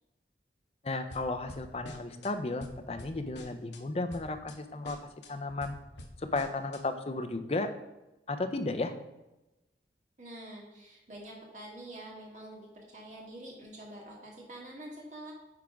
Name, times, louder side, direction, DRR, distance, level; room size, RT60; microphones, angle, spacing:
voice 1, 0.8-5.0 5.3-5.8 6.2-7.7 8.3-8.9, left 2 dB, 35° left, 7 dB, 0.5 m, -34 dB
sound 1, 1.1-2.3 2.6-3.8 4.1-4.6 4.8-6.8, left 1 dB, 85° left, 0.9 m, -47 dB
voice 2, 10.2-15.3, right 1 dB, 45° right, -2 dB, 1.8 m, -46 dB
9.5 x 3.5 x 5.1 m, 1.0 s
head